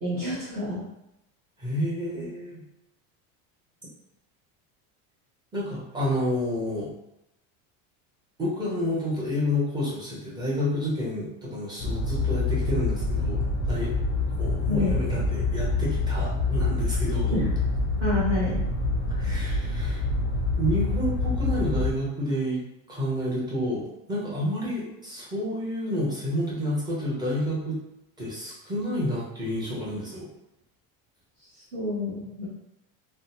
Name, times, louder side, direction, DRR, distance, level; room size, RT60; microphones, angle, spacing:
voice 1, 0.0-0.8 14.7-15.0 17.3-17.5 18.0-18.6 31.4-32.5, left 2 dB, 30° right, -11 dB, 1.1 m, -28 dB
voice 2, 1.6-2.6 5.5-6.9 8.4-13.9 14.4-17.4 19.1-20.0 20.6-22.6 22.9-27.8 28.2-30.3, left 1 dB, 10° right, -6 dB, 0.8 m, -29 dB
sound 1, 11.8-21.9, left 3 dB, 30° left, 0.4 m, -26 dB
3.5 x 2.1 x 2.8 m, 0.85 s
cardioid pair, 155°, 39 cm